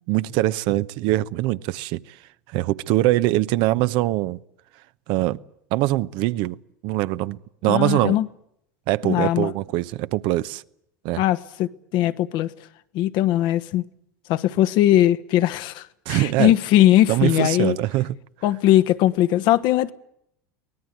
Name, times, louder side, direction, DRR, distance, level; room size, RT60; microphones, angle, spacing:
voice 1, 0.1-2.0 2.5-4.4 5.1-5.4 5.7-6.6 6.8-8.2 8.9-10.6 11.0-11.2 16.1-16.5 17.1-18.1, right 16 dB, 60° right, 0.9 m, -22 dB
voice 2, 7.7-8.3 9.0-9.5 11.2-12.5 12.9-13.8 14.3-17.8 18.4-19.9, left 13 dB, 55° left, 1.3 m, -20 dB
24.0 x 19.0 x 9.3 m
hypercardioid pair, 90°, 9 cm